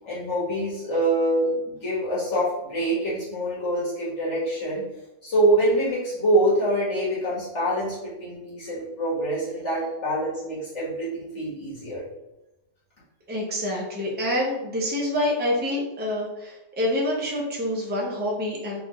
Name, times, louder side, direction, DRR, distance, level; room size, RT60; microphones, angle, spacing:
voice 1, 0.0-4.8 5.2-12.0, right 1 dB, 70° left, -8 dB, 2.0 m, -25 dB
voice 2, 13.3-18.8, left 1 dB, 10° right, -2 dB, 0.5 m, -27 dB
4.0 x 2.4 x 3.1 m, 0.97 s
omnidirectional pair, 1.3 m